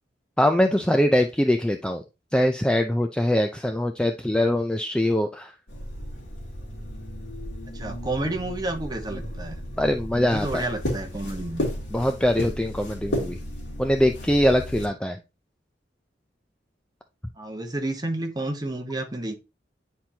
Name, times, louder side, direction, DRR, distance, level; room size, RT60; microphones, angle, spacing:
voice 1, 0.4-2.0 2.3-5.5 9.8-10.6 11.9-13.4 13.8-15.2, left 1 dB, 5° left, 0.4 m, -22 dB
sound 1, 5.7-14.9, equal, 90° left, 2.3 m, -34 dB
voice 2, 7.7-9.6 10.1-11.7 17.4-19.4, right 2 dB, 20° right, 1.0 m, -30 dB
9.4 x 4.4 x 2.7 m
head